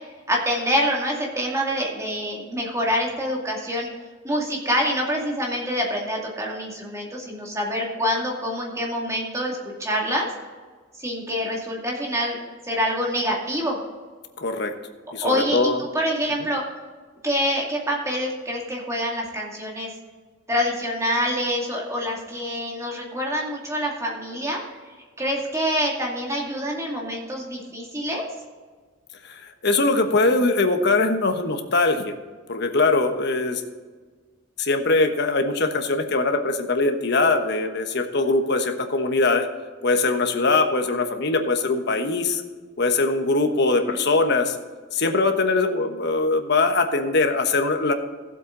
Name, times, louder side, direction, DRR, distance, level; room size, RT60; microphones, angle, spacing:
voice 1, 0.3-3.9 4.2-10.3 11.0-12.4 12.6-13.8 15.2-16.6 17.2-19.9 20.5-24.6 25.2-28.3 43.6-44.0, equal, 15° right, -2 dB, 2.4 m, -26 dB
voice 2, 14.4-14.7 15.1-15.8 29.2-32.1 32.5-33.6 34.6-39.5 39.8-42.4 42.8-44.5 44.9-47.9, left 3 dB, 55° left, 6 dB, 1.2 m, -22 dB
15.5 x 8.0 x 3.9 m, 1.4 s
head